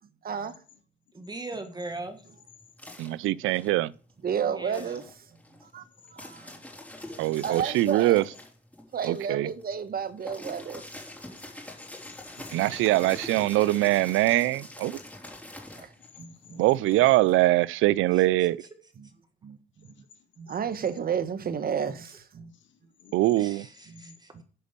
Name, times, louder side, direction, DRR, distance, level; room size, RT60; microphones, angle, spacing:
voice 1, 0.2-0.6 4.2-5.0 5.7-5.8 6.1-6.6 7.4-8.2 8.9-10.8 12.5-12.6 15.8-15.9 16.2-16.6 19.0-19.1 19.4-19.9 20.4-22.5 23.9-24.4, right 7 dB, 50° right, 1.1 m, -32 dB
voice 2, 1.1-2.2 4.4-5.0 18.0-18.2 23.4-24.4, right 2 dB, 20° right, 1.5 m, -40 dB
sound 1, 1.9-4.2 4.6-17.3, left 1 dB, 5° left, 3.7 m, -45 dB
voice 3, 3.0-3.9 7.2-8.2 9.0-9.5 12.5-15.0 16.6-18.6 23.1-23.7, right 17 dB, 90° right, 0.4 m, -23 dB
voice 4, 7.0-8.0 11.2-11.8 12.4-13.2 16.2-17.0 19.9-20.0 22.5-23.4, left 7 dB, 70° left, 2.1 m, -52 dB
10.0 x 5.2 x 6.6 m
cardioid pair, 90°, 20 cm